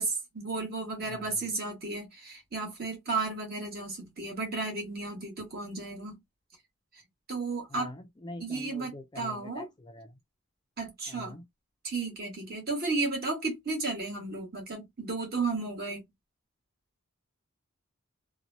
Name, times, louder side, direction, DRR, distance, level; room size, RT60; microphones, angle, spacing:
voice 1, 0.0-6.2 7.3-7.9 8.4-9.7 10.8-11.3 11.8-16.0, right 3 dB, 45° right, 1.5 m, -33 dB
voice 2, 7.7-10.1 11.1-11.4, left 1 dB, 20° left, 0.4 m, -44 dB
2.9 x 2.2 x 2.6 m
head